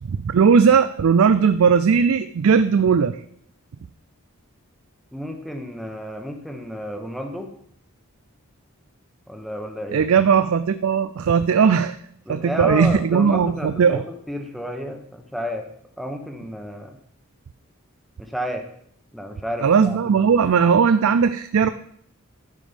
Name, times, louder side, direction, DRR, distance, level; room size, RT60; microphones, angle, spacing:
voice 1, 0.0-3.2 9.9-12.0 12.3-14.0 19.6-21.7, right 6 dB, 70° right, 11 dB, 0.4 m, -18 dB
voice 2, 5.1-7.5 9.3-10.1 12.3-15.7 16.0-17.0 18.2-18.6 19.1-20.4, equal, ahead, 4 dB, 1.0 m, -31 dB
11.5 x 5.2 x 5.2 m, 0.67 s
head